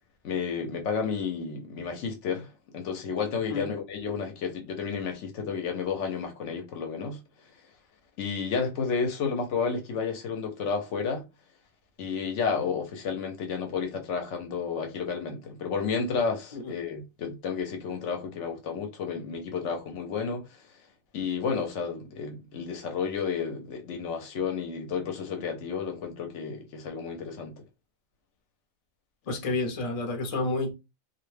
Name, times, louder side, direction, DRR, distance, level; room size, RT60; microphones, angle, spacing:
voice 1, 0.2-2.5 2.7-7.2 8.2-11.2 12.0-20.6 21.1-27.6, left 5 dB, 65° left, 0.8 m, -31 dB
voice 2, 29.3-30.7, left 3 dB, 45° left, 0.4 m, -30 dB
2.4 x 2.1 x 3.1 m
omnidirectional pair, 1.4 m